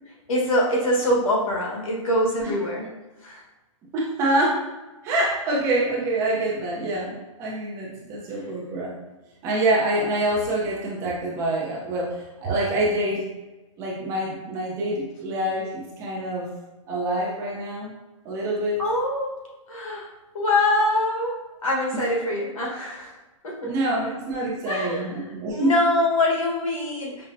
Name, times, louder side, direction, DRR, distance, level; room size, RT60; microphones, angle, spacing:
voice 1, 0.3-2.9 3.2-3.4 18.8-19.4 19.7-20.1 20.3-23.1 23.4-23.7 24.6-25.1 25.5-27.3, left 1 dB, 85° left, -3 dB, 1.3 m, -24 dB
voice 2, 3.9-4.7 5.0-8.9 9.4-13.2 13.8-16.5 16.9-17.9 18.2-18.8 21.9-22.1 23.6-25.8, right 1 dB, 20° right, -4 dB, 0.5 m, -26 dB
5.3 x 2.1 x 2.6 m, 1.1 s
hypercardioid pair, 160°, 17 cm